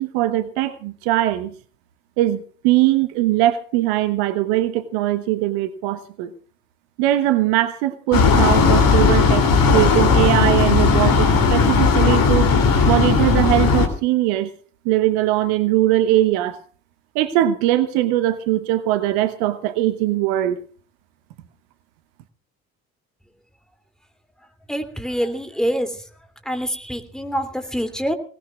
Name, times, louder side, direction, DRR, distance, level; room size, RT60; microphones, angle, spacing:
voice 1, 0.0-1.5 2.2-6.3 7.0-12.5 12.9-14.5 14.8-16.6 17.1-20.6, right 14 dB, 60° right, 12 dB, 1.1 m, -20 dB
sound 1, 8.1-13.9, left 5 dB, 50° left, 3.1 m, -16 dB
voice 2, 24.7-25.9 26.5-28.1, equal, ahead, 6 dB, 2.8 m, -25 dB
25.5 x 18.5 x 2.4 m, 0.42 s
figure-of-eight pair, 50°, 43 cm